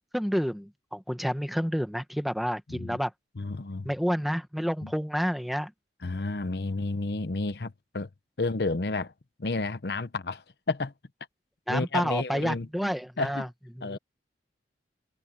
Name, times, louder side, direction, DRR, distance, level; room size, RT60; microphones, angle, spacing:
voice 1, 0.1-3.1 3.8-5.7 11.7-13.5 13.7-14.0, equal, ahead, 1.2 m, -29 dB
voice 2, 3.4-3.9 4.8-4.9 6.0-8.1 8.4-9.1 9.4-10.9 11.7-13.5 13.8-14.0, left 3 dB, 65° left, 0.8 m, -31 dB
head